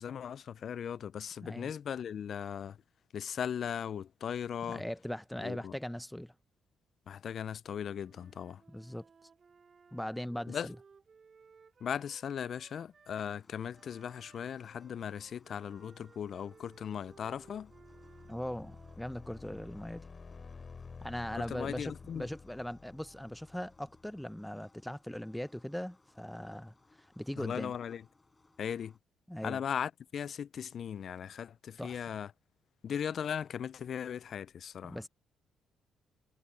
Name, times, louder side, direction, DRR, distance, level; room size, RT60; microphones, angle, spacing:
voice 1, 0.0-2.8 3.1-4.8 5.4-5.7 7.1-8.6 10.5-10.7 11.8-17.7 21.5-22.3 27.4-28.0 28.6-28.9 29.4-32.3 32.8-35.0, left 8 dB, 60° left, 0.4 m, -38 dB
voice 2, 1.4-1.7 4.7-6.3 8.7-9.0 9.9-10.8 18.3-20.0 21.0-27.7 29.3-29.6 31.8-32.0 34.8-35.1, equal, 5° left, 0.7 m, -40 dB
Wind instrument woodwind instrument, 7.8-13.3 13.7-19.6, right 5 dB, 40° right, 3.3 m, -61 dB
sound 1, 13.1-29.0, left 3 dB, 20° left, 4.8 m, -67 dB
sound 2, 17.0-24.5, left 5 dB, 35° left, 3.4 m, -51 dB
cardioid pair, 90°, 0 cm